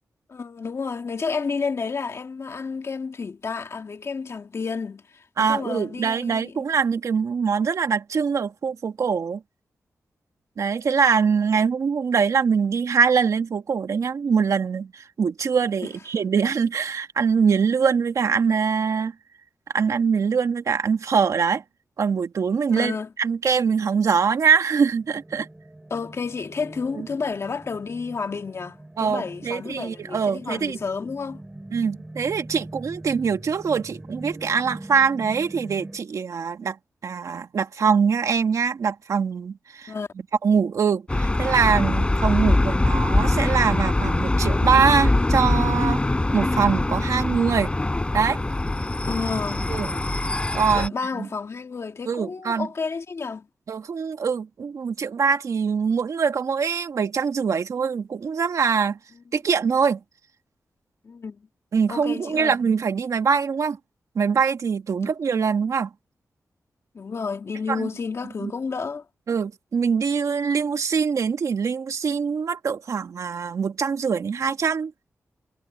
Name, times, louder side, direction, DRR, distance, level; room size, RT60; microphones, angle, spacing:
voice 1, 0.3-6.5 22.7-23.1 25.9-31.4 39.9-40.1 49.0-49.7 50.7-53.5 61.0-61.5 61.9-62.6 65.0-65.4 66.9-69.1, left 5 dB, 55° left, 1.9 m, -31 dB
voice 2, 5.4-9.4 10.6-19.1 19.7-21.6 22.0-25.5 26.9-27.1 29.0-30.8 31.7-39.9 40.4-46.0 46.3-47.7 48.1-48.4 49.7-49.9 50.5-51.3 52.1-52.7 53.7-59.0 59.3-60.0 61.7-63.8 64.2-65.9 67.7-67.9 68.4-68.5 69.3-74.9, right 6 dB, 70° right, 2.0 m, -23 dB
sound 1, 24.9-36.0, right 1 dB, 15° right, 3.8 m, -42 dB
sound 2, 41.1-50.9, left 2 dB, 20° left, 3.9 m, -23 dB
wide cardioid pair, 95°, 6 cm